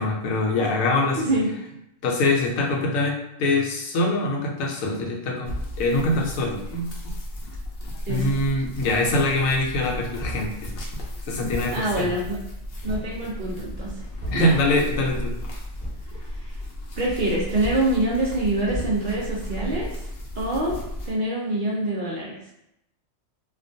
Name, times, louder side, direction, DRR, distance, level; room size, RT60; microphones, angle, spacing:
voice 1, 0.0-1.2 2.0-5.5 5.8-6.9 8.1-10.7 11.3-12.1 14.3-15.3, left 2 dB, 85° left, 0 dB, 1.0 m, -23 dB
voice 2, 1.2-1.5 8.1-8.4 11.7-12.4 12.8-14.1 14.3-14.5 16.4-16.5 17.0-19.9 20.4-20.8 21.1-22.4, right 1 dB, 60° right, -4 dB, 0.5 m, -25 dB
sound 1, 5.4-21.1, left 1 dB, 65° left, 0.7 m, -35 dB
sound 2, 8.7-9.2 9.5-13.2 13.6-14.6 15.0-15.4 15.7-16.1 16.9-20.4 20.7-21.0, equal, 15° right, 0.8 m, -38 dB
2.4 x 2.2 x 2.6 m, 0.82 s
omnidirectional pair, 1.4 m